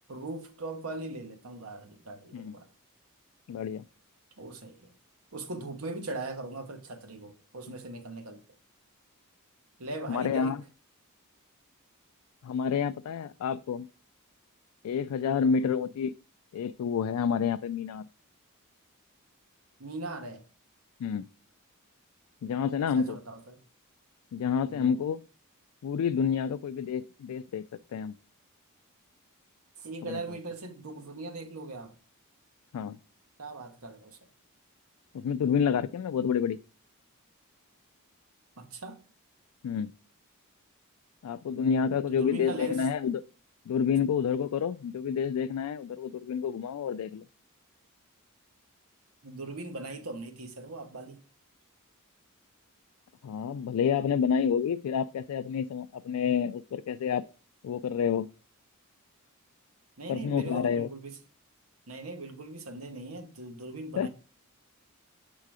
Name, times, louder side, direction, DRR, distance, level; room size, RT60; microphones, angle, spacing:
voice 1, 0.1-2.7 4.4-4.9 5.3-8.4 9.8-10.6 15.6-15.9 19.8-20.4 22.9-23.6 24.7-25.0 29.8-31.9 33.4-34.2 38.6-39.0 42.1-42.8 49.2-51.2 60.0-61.2 61.9-64.1, right 2 dB, 70° right, 1.1 m, -40 dB
voice 2, 3.5-3.8 10.1-10.6 12.4-13.9 14.8-16.1 16.5-18.1 21.0-21.3 22.4-23.2 24.3-25.2 25.8-27.7 27.9-28.1 30.0-30.2 32.7-33.0 35.1-36.6 39.6-39.9 41.2-43.2 43.7-47.2 53.2-57.2 57.6-58.3 60.1-60.9 64.0-64.1, left 7 dB, 85° left, 0.3 m, -29 dB
7.4 x 3.8 x 4.8 m
head